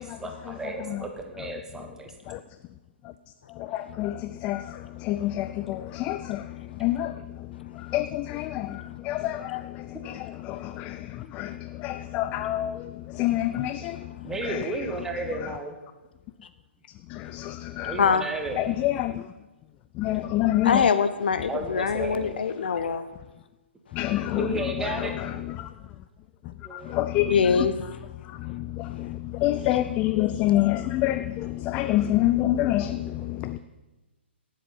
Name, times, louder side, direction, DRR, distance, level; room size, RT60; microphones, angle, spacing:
voice 1, 0.0-2.4 14.2-15.8 17.8-18.6 20.1-20.2 20.5-20.6 21.5-22.4 24.2-25.4 26.6-27.0 33.2-33.3, right 2 dB, 10° right, 1.4 m, -34 dB
voice 2, 3.6-7.5 7.7-14.1 14.4-14.6 17.1-18.0 18.6-19.2 20.0-20.9 23.9-25.3 25.6-25.7 26.7-27.7 28.3-33.6, left 14 dB, 20° left, 0.3 m, -28 dB
voice 3, 20.6-23.0 27.3-27.7, left 6 dB, 55° left, 0.8 m, -23 dB
17.5 x 7.6 x 5.5 m
figure-of-eight pair, 125°, 6 cm